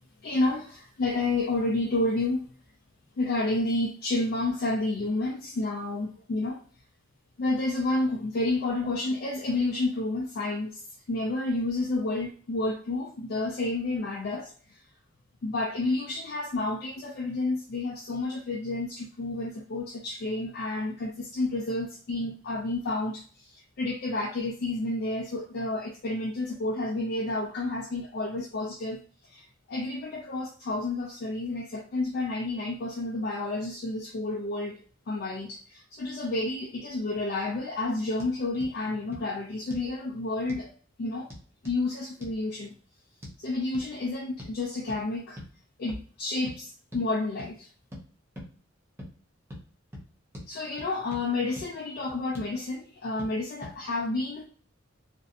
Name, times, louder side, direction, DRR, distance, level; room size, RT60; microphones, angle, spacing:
voice 1, 0.2-2.5 3.2-6.6 7.4-10.8 11.1-14.8 15.4-29.0 29.2-34.8 35.1-40.7 41.0-41.3 41.6-42.7 43.4-45.4 45.8-47.7 50.5-54.5, left 2 dB, 55° left, 0.4 m, -30 dB
sound 1, 38.2-38.3 38.6-38.7 39.1-39.3 39.7-39.9 40.5-40.7 41.3-41.8 42.2-42.4 43.2-43.4 43.7-43.9 44.4-44.6 44.9-45.0 45.4-45.5 45.9-46.1 46.5-46.6 46.9-47.1 47.4-47.5 47.9-48.0 48.4-48.5 49.0-49.1 49.5-49.6 49.9-50.1 50.3-50.5 50.8-51.2 51.6-51.7 52.1-52.5 53.2-53.3 53.6-53.8, left 1 dB, 15° right, 0.6 m, -42 dB
2.5 x 2.0 x 2.7 m
head